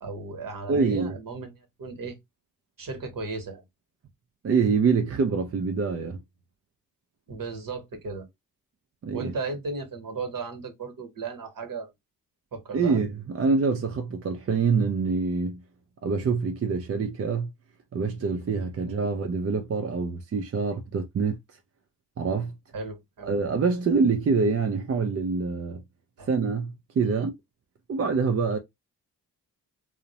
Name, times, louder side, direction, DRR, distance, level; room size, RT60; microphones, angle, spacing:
voice 1, 0.0-2.2 2.8-3.6 7.3-8.3 9.1-11.9 12.5-13.0 18.8-18.9 22.7-23.3 26.2-26.3 27.0-27.3, right 4 dB, 55° right, 1.1 m, -35 dB
voice 2, 0.7-1.1 4.4-6.2 9.0-9.3 12.7-15.6 16.0-17.5 17.9-21.4 22.2-22.5 23.2-25.8 26.3-27.3 27.9-28.6, right 4 dB, 40° right, 0.5 m, -25 dB
2.4 x 2.1 x 2.8 m
supercardioid pair, 40°, 39 cm